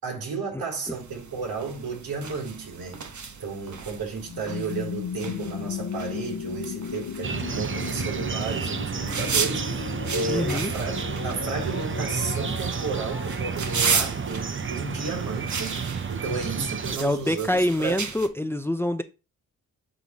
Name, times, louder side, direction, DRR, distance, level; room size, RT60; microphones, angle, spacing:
voice 1, 0.0-3.0 3.4-11.0 11.2-15.8 16.1-18.0, right 4 dB, 75° right, 3.7 m, -33 dB
sound 1, 0.9-18.3, right 5 dB, 50° right, 1.2 m, -35 dB
sound 2, 4.2-16.0, left 8 dB, 60° left, 1.0 m, -36 dB
sound 3, 7.2-17.0, right 6 dB, 35° right, 0.7 m, -31 dB
voice 2, 10.3-10.7 17.0-19.0, left 1 dB, 5° left, 0.6 m, -25 dB
9.3 x 4.0 x 2.9 m
supercardioid pair, 50°, 36 cm